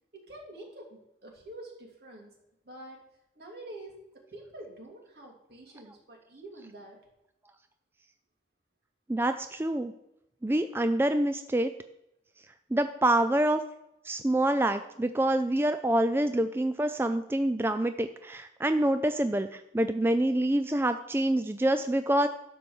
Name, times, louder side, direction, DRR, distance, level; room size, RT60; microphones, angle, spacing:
voice 1, 0.1-2.3 2.6-3.0 3.3-7.0, right 1 dB, 70° right, -1 dB, 2.8 m, -47 dB
voice 2, 9.1-9.9 10.4-11.7 12.7-13.6 14.0-22.3, right 1 dB, 15° right, 8 dB, 0.3 m, -26 dB
12.0 x 4.6 x 7.1 m, 0.86 s
head